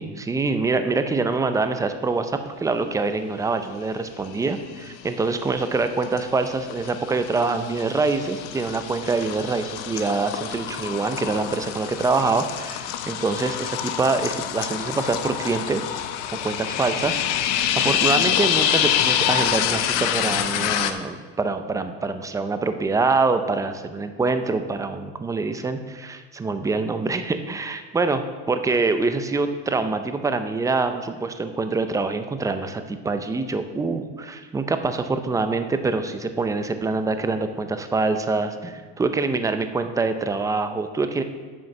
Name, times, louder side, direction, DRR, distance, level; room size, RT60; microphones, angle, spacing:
voice 1, 0.0-15.9 16.4-41.2, right 3 dB, 10° right, 9 dB, 0.5 m, -25 dB
sound 1, 4.6-5.1 5.4-20.9, left 10 dB, 75° left, 0.9 m, -26 dB
9.0 x 6.3 x 6.9 m, 1.5 s
supercardioid pair, 135°, 36 cm